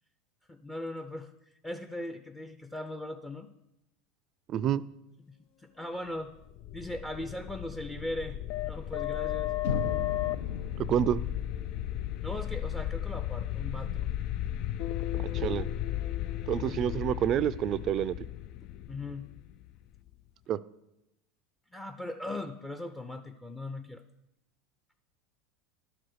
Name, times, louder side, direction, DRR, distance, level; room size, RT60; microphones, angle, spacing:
voice 1, 0.5-1.3 1.6-3.5 5.3-6.3 6.7-9.5 12.2-14.1 16.5-16.8 18.9-19.3 21.7-24.0, left 1 dB, 10° left, 8 dB, 0.6 m, -39 dB
voice 2, 4.5-4.8 10.8-11.2 15.3-15.7 16.5-18.1 20.5-20.6, right 10 dB, 45° right, 16 dB, 0.4 m, -28 dB
sound 1, 6.4-20.1, left 12 dB, 55° left, 0.4 m, -34 dB
sound 2, 9.6-13.6, left 5 dB, 80° left, 0.9 m, -38 dB
11.5 x 5.0 x 6.4 m, 0.88 s
hypercardioid pair, 100°, 0 cm